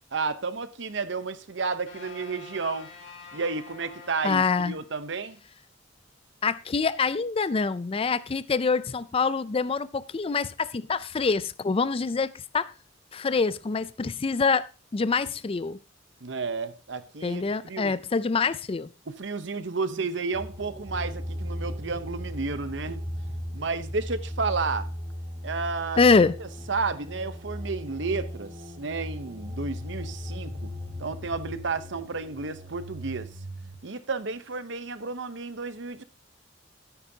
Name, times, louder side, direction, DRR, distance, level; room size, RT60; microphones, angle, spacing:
voice 1, 0.1-2.9 3.3-5.4 16.2-17.9 19.1-23.1 23.5-24.9 25.4-26.0 26.4-30.7 31.0-33.3 33.8-36.0, right 4 dB, 70° right, 0.9 m, -32 dB
sound 1, 1.9-5.1, left 5 dB, 65° left, 3.4 m, -47 dB
voice 2, 4.2-4.8 6.4-12.7 13.1-14.7 14.9-15.8 17.2-18.9 26.0-26.4, left 4 dB, 30° left, 0.4 m, -25 dB
sound 2, 20.3-33.7, equal, 25° right, 1.9 m, -37 dB
13.0 x 9.4 x 2.8 m
head